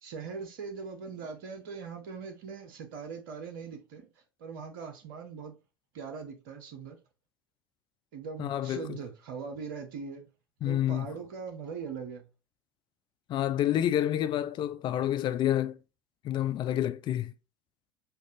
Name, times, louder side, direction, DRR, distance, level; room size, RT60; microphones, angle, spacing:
voice 1, 0.0-4.1 4.4-5.5 5.9-7.0 8.1-10.3 10.6-12.2, right 5 dB, 65° right, 0.8 m, -41 dB
voice 2, 8.4-9.0 10.6-11.1 13.3-15.8 16.2-17.3, left 11 dB, 40° left, 0.5 m, -28 dB
6.7 x 2.4 x 2.6 m
figure-of-eight pair, 70°, 12 cm